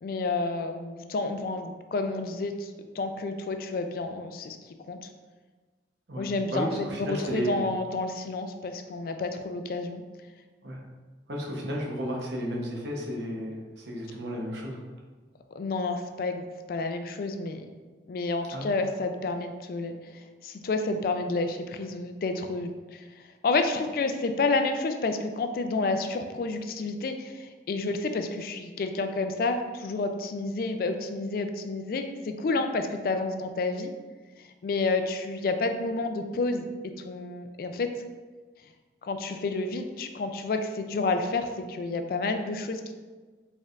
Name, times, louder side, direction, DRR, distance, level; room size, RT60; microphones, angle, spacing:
voice 1, 0.0-2.7 3.0-4.6 4.9-5.1 6.2-10.0 15.5-17.7 18.1-19.9 20.4-23.0 23.4-33.9 34.6-36.7 37.0-37.9 39.0-42.9, left 3 dB, 55° left, 7 dB, 0.3 m, -30 dB
voice 2, 6.5-7.6 10.6-10.8 11.3-14.8 18.5-18.7, equal, 80° right, -1 dB, 0.8 m, -33 dB
4.4 x 3.4 x 2.4 m, 1.4 s
head